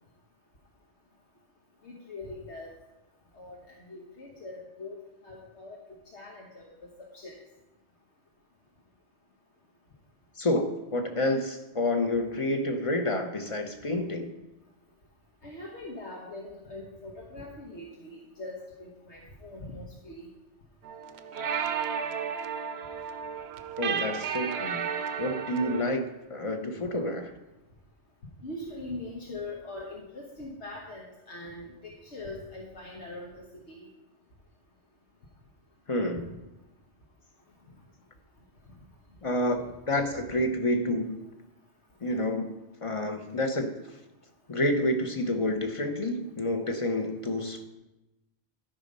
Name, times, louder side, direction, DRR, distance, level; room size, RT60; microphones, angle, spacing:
voice 1, 1.8-2.7 3.3-4.9 5.2-5.8 6.1-6.7 7.0-7.3 15.4-20.3 28.4-33.9, left 2 dB, 75° left, -2 dB, 1.5 m, -42 dB
voice 2, 10.4-14.3 23.8-24.9 25.2-26.0 26.3-27.3 35.9-36.3 39.2-41.2 42.0-42.5 42.8-43.7 44.5-47.6, left 1 dB, 30° left, 6 dB, 0.9 m, -29 dB
sound 1, 20.9-25.8, right 7 dB, 70° right, 0.9 m, -33 dB
12.5 x 5.1 x 5.4 m, 0.97 s
omnidirectional pair, 1.2 m